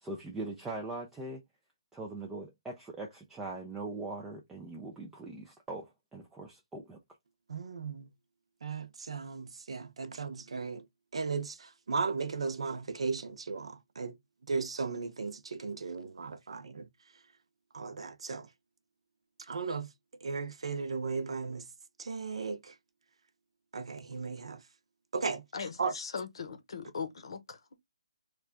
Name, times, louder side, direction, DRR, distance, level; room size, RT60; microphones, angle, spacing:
voice 1, 0.0-1.4 1.9-7.0, right 2 dB, 5° right, 0.3 m, -41 dB
voice 2, 7.5-8.1 8.6-10.8 11.1-14.2 14.5-16.9 17.7-18.5 19.5-19.9 20.2-21.7 22.0-22.7 23.7-24.6 25.1-25.4 25.8-25.9, right 4 dB, 65° right, 0.7 m, -36 dB
voice 3, 25.5-27.8, left 5 dB, 55° left, 0.8 m, -40 dB
3.2 x 2.3 x 3.5 m
hypercardioid pair, 170°, 3 cm